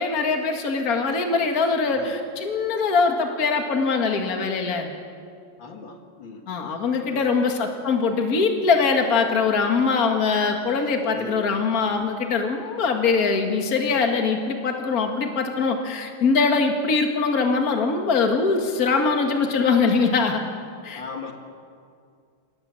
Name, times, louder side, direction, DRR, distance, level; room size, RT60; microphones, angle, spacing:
voice 1, 0.0-4.9 6.5-20.4 20.8-21.0, left 4 dB, 45° left, 4 dB, 2.2 m, -22 dB
voice 2, 5.6-6.4 7.1-7.5 11.1-11.4 20.9-21.3, left 4 dB, 60° left, 4 dB, 2.3 m, -38 dB
27.5 x 17.0 x 7.7 m, 2.3 s
omnidirectional pair, 2.4 m